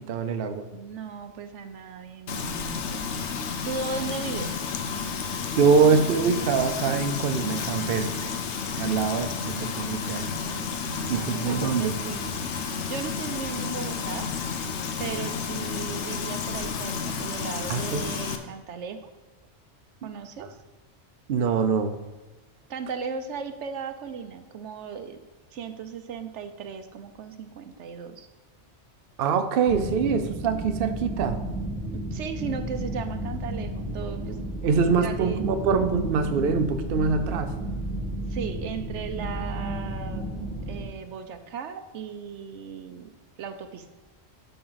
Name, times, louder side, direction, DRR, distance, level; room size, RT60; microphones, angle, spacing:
voice 1, 0.0-0.7 5.6-8.3 8.8-9.3 9.6-10.3 11.1-12.0 17.7-18.1 20.4-20.5 21.3-22.0 29.2-31.4 34.6-37.6, right 5 dB, 60° right, 8 dB, 0.8 m, -24 dB
voice 2, 0.7-3.4 3.6-4.5 8.9-10.0 10.9-14.3 15.0-19.1 20.0-20.5 22.7-25.2 25.5-28.3 31.9-34.4 35.0-35.4 38.2-40.3 40.7-43.1 43.4-43.8, right 6 dB, 80° right, 8 dB, 1.0 m, -37 dB
Frying (food), 2.3-18.4, left 5 dB, 75° left, 1.0 m, -31 dB
sound 1, 29.7-40.8, right 1 dB, 15° left, 2.6 m, -32 dB
12.0 x 5.6 x 3.9 m, 1.2 s
omnidirectional pair, 1.2 m